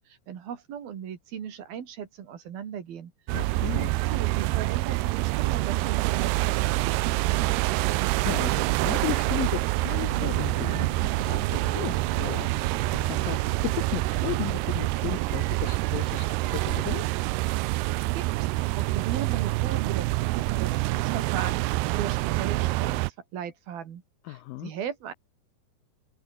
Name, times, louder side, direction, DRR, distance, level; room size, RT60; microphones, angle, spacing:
voice 1, 0.1-3.1 3.7-7.7 18.2-18.3 18.7-24.0 24.3-25.1, right 8 dB, 60° right, 4.2 m, -37 dB
voice 2, 3.3-3.9 8.2-17.1 24.2-24.7, left 17 dB, 90° left, 2.0 m, -35 dB
sound 1, 3.3-23.1, right 21 dB, 80° right, 2.5 m, -26 dB
Bass guitar, 10.1-16.3, left 1 dB, 10° left, 5.8 m, -44 dB
omnidirectional pair, 5.0 m